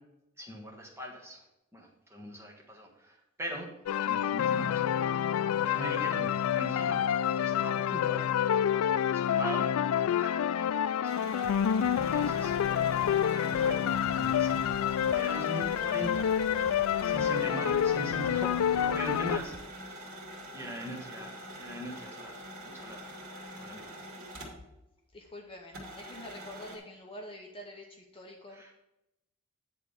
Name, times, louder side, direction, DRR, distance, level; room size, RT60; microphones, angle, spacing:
voice 1, 0.4-1.4 1.7-3.7 4.0-4.9 5.7-8.3 9.1-9.7 10.2-11.2 12.0-12.5 12.9-14.8 15.1-16.3 17.0-19.5 19.9-20.1 20.5-23.1 23.6-23.9 28.5-28.7, right 1 dB, 10° right, -1 dB, 1.4 m, -41 dB
sound 1, 3.9-19.4, left 9 dB, 75° left, 0.3 m, -28 dB
sound 2, 11.0-24.8 25.1-25.2 25.7-26.8, equal, 75° right, 2.1 m, -45 dB
sound 3, 11.4-19.8, right 4 dB, 30° right, 0.4 m, -51 dB
voice 2, 25.1-28.8, left 1 dB, 25° left, 1 dB, 0.8 m, -46 dB
9.2 x 3.6 x 6.5 m, 0.88 s
head